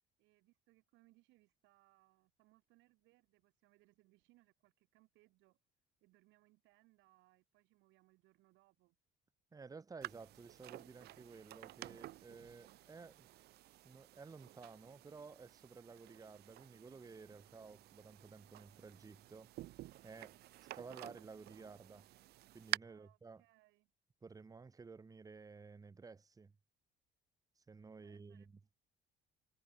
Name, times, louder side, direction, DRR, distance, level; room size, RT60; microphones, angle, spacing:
voice 1, 0.2-5.6 6.0-9.0 22.8-23.9 28.0-28.5, right 20 dB, 90° right, 4.0 m, -71 dB
voice 2, 9.5-13.3 13.8-19.5 20.0-22.1 22.5-23.4 24.2-26.5 27.6-28.6, right 4 dB, 20° right, 1.0 m, -54 dB
sound 1, 10.0-22.8, right 16 dB, 60° right, 0.4 m, -50 dB
cardioid pair, 120°, 19 cm